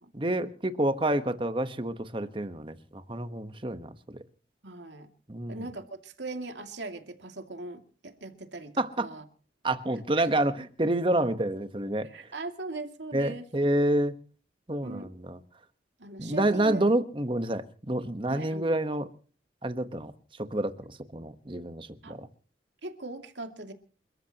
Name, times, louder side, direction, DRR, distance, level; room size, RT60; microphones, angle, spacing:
voice 1, 0.1-3.9 5.3-5.6 8.8-9.1 9.6-12.1 13.1-14.1 14.7-15.4 16.2-19.1 19.6-20.1 20.4-22.3, right 1 dB, 30° right, 10 dB, 1.2 m, -28 dB
voice 2, 4.6-5.1 5.5-9.2 10.1-10.3 12.0-13.5 14.8-15.1 16.0-16.9 18.3-18.8 22.0-22.2 22.8-23.7, right 2 dB, 90° right, 6 dB, 2.5 m, -40 dB
29.0 x 13.5 x 3.0 m, 0.40 s
head